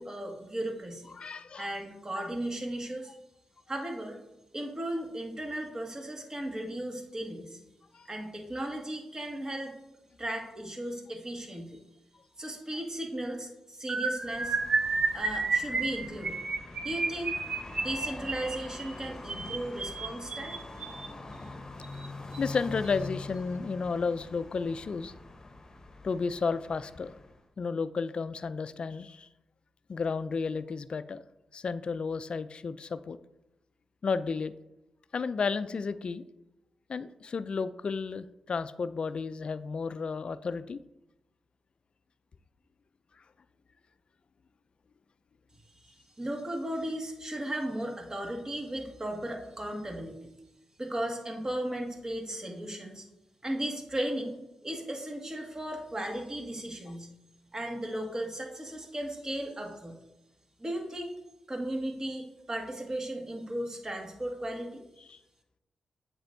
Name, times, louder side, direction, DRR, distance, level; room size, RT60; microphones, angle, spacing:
voice 1, 0.0-1.1 1.6-3.2 3.7-4.2 4.5-7.6 8.1-9.7 10.2-11.8 12.4-14.6 15.1-16.4 16.8-17.4 17.8-20.6 45.8-50.3 50.8-53.1 53.4-57.1 57.5-60.0 60.6-61.1 61.5-64.8, right 1 dB, 30° right, 2 dB, 1.8 m, -36 dB
voice 2, 1.2-1.7 7.9-8.1 22.4-25.1 26.0-27.1 27.6-29.3 29.9-31.2 31.5-33.2 34.0-34.5 35.1-36.2 36.9-40.8 65.1-65.2, left 5 dB, 55° left, 13 dB, 0.3 m, -32 dB
sound 1, 13.9-21.1 21.8-22.1 22.3-22.6 22.8-23.1, right 3 dB, 55° right, 1.0 m, -32 dB
sound 2, 14.2-27.5, left 2 dB, 35° left, 1.0 m, -44 dB
7.9 x 6.2 x 2.6 m, 0.91 s
supercardioid pair, 40°, 2 cm